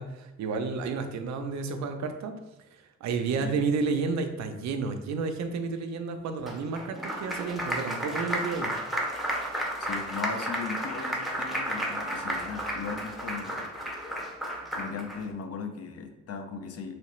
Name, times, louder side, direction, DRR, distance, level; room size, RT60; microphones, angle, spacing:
voice 1, 0.0-2.4 2.7-8.7, right 4 dB, 65° right, 7 dB, 0.5 m, -31 dB
Applause, 6.5-15.2, right 1 dB, ahead, 0.6 m, -32 dB
voice 2, 9.8-13.7 14.7-16.9, left 5 dB, 55° left, 6 dB, 0.5 m, -37 dB
3.1 x 2.8 x 3.1 m, 0.96 s
cardioid pair, 90°, 30 cm